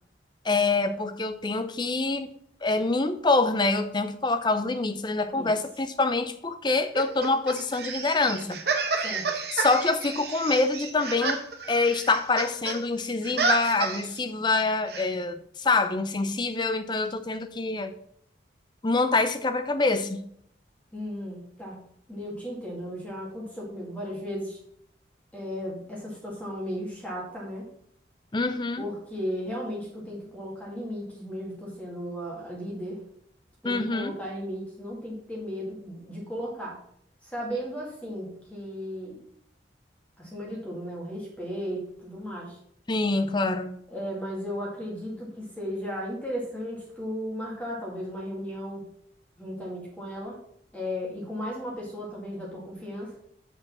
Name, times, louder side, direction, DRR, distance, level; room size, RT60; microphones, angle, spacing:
voice 1, 0.4-2.3 2.6-8.6 9.5-11.4 11.7-17.9 18.8-20.2 28.3-28.8 33.6-34.1 42.9-43.8, left 3 dB, 25° left, 11 dB, 0.5 m, -25 dB
sound 1, 6.9-12.8 13.0-14.2 14.9-15.0, right 4 dB, 55° right, 1.1 m, -30 dB
voice 2, 20.9-21.8 22.1-24.6 25.3-27.7 28.8-33.0 33.6-36.8 37.2-39.2 40.2-42.6 43.9-48.9 49.4-50.4 50.7-53.2, equal, 5° left, -3 dB, 1.9 m, -35 dB
6.3 x 5.1 x 6.0 m, 0.67 s
head